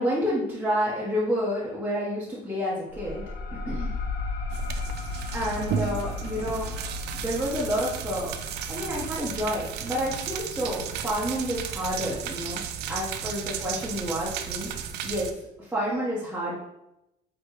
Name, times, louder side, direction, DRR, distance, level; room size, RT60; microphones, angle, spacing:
voice 1, 0.0-3.2 3.5-3.9 5.0-6.7 7.1-8.3 8.7-12.6 12.9-14.7 15.0-15.3 15.6-16.5, equal, 10° right, -8 dB, 1.2 m, -29 dB
sound 1, 2.9-12.1, left 3 dB, 65° left, 0.7 m, -36 dB
sound 2, 4.5-15.3, right 8 dB, 80° right, 0.4 m, -34 dB
4.7 x 3.2 x 3.2 m, 0.86 s
cardioid pair, 110°, 17 cm